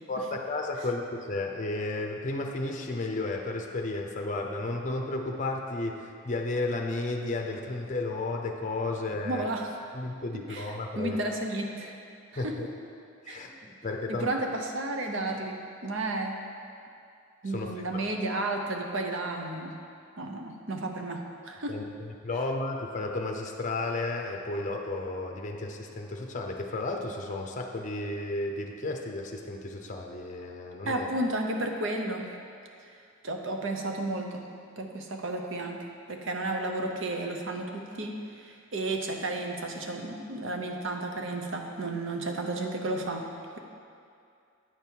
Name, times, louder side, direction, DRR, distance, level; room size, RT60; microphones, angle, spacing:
voice 1, 0.1-9.5 9.9-11.2 12.4-12.7 13.2-14.4 17.5-18.1 21.7-21.8 22.2-31.1, left 2 dB, 35° left, 2 dB, 0.6 m, -33 dB
voice 2, 9.2-9.7 10.3-12.0 12.3-12.6 13.3-13.4 14.1-16.4 17.4-19.7 20.2-21.8 30.9-32.3 33.2-34.5 34.8-43.3 43.5-43.6, right 2 dB, 60° right, 3 dB, 0.8 m, -32 dB
8.8 x 5.4 x 4.5 m, 2.5 s
head